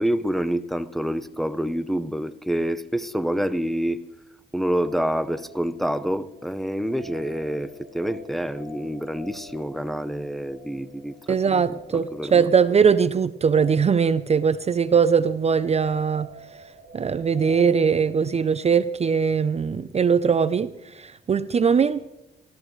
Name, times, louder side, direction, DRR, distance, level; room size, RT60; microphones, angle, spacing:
voice 1, 0.0-4.1 4.5-11.6 11.9-12.5, equal, ahead, 0.8 m, -27 dB
sound 1, 4.8-17.6, right 1 dB, 35° left, 7.6 m, -47 dB
voice 2, 11.3-16.3 16.9-22.1, right 6 dB, 35° right, 0.5 m, -21 dB
27.0 x 13.5 x 3.2 m
cardioid pair, 90°, 20 cm